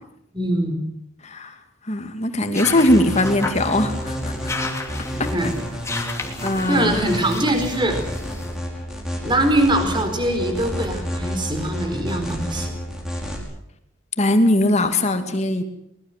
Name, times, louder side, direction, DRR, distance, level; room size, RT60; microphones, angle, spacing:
voice 1, 0.3-0.9 5.1-5.5 6.7-8.0 9.2-12.8, right 1 dB, 25° right, 6 dB, 4.4 m, -22 dB
voice 2, 1.9-4.3 5.2-5.3 6.4-7.1 14.2-15.6, left 1 dB, 35° left, 7 dB, 2.5 m, -20 dB
sound 1, 2.4-8.5, left 3 dB, 15° left, 2.9 m, -33 dB
sound 2, 2.7-13.4, equal, 5° right, 5.3 m, -30 dB
23.5 x 21.0 x 7.6 m, 0.75 s
head